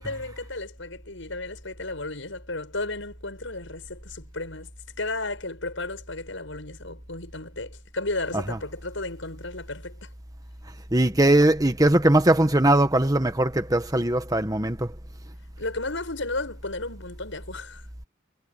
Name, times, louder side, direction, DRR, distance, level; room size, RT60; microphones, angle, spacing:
voice 1, 0.0-4.7 5.0-10.1 15.6-17.9, left 2 dB, 75° left, 7.7 m, -34 dB
voice 2, 10.9-14.9, right 1 dB, 20° right, 1.6 m, -20 dB
head